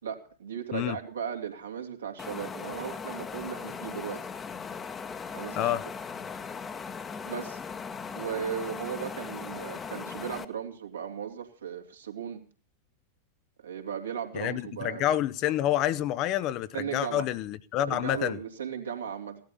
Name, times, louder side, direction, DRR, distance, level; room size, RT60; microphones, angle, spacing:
voice 1, 0.0-4.2 5.3-5.9 7.2-7.6 8.1-12.4 13.6-15.1 16.7-17.3 17.9-19.4, right 8 dB, 70° right, 2.9 m, -36 dB
sound 1, 2.2-10.4, left 5 dB, 20° left, 1.3 m, -38 dB
voice 2, 14.3-18.4, left 12 dB, 40° left, 0.9 m, -28 dB
17.0 x 12.0 x 7.0 m
figure-of-eight pair, 90°, 0 cm